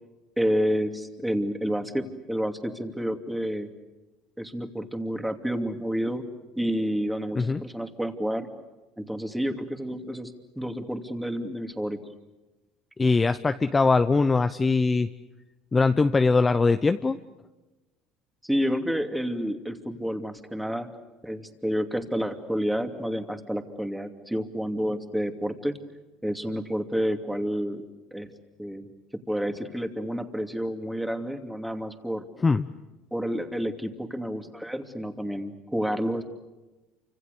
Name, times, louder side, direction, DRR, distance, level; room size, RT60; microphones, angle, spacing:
voice 1, 0.4-3.7 4.4-6.2 6.6-8.5 9.0-10.3 10.6-12.0 18.4-20.9 21.2-25.7 26.2-27.8 28.1-28.3 28.6-28.9 29.3-32.2 33.1-36.2, equal, 5° right, 6 dB, 2.7 m, -29 dB
voice 2, 13.0-15.1 15.7-17.2 32.4-32.7, left 4 dB, 20° left, 9 dB, 0.8 m, -21 dB
28.5 x 26.0 x 6.9 m, 1.1 s
supercardioid pair, 95°, 0 cm